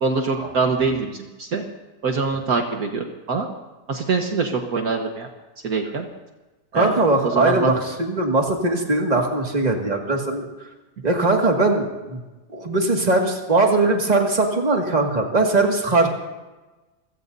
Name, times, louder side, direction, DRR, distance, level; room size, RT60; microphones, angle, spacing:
voice 1, 0.0-1.6 2.0-3.5 3.9-5.3 5.6-6.1 6.7-7.0 7.3-7.7, right 4 dB, 60° right, 3 dB, 1.7 m, -24 dB
voice 2, 6.7-10.5 11.0-12.2 12.5-16.1, right 2 dB, 25° right, 1 dB, 2.1 m, -20 dB
28.0 x 16.5 x 2.7 m, 1.1 s
omnidirectional pair, 1.8 m